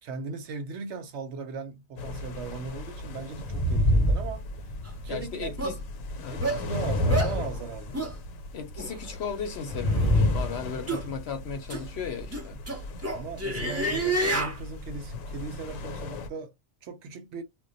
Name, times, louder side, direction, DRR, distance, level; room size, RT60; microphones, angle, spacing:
voice 1, 0.0-4.5 5.0-5.5 6.3-7.9 13.1-16.5 16.8-17.4, right 4 dB, 65° right, 0.9 m, -38 dB
sound 1, 2.0-16.3, left 2 dB, 90° left, 1.0 m, -38 dB
sound 2, 3.4-5.0 6.5-8.1 9.7-10.9, left 1 dB, 25° left, 0.8 m, -25 dB
sound 3, 4.9-5.0 5.6-5.8 6.4-6.6 7.1-7.4 7.9-8.1 8.8-8.9 9.9-10.1 10.9-11.1 11.7-11.8 12.3-14.6, right 1 dB, 15° right, 0.5 m, -29 dB
voice 2, 5.1-5.8 6.2-6.4 8.5-12.6 15.6-15.7, left 6 dB, 65° left, 0.8 m, -36 dB
2.2 x 2.2 x 3.8 m
omnidirectional pair, 1.4 m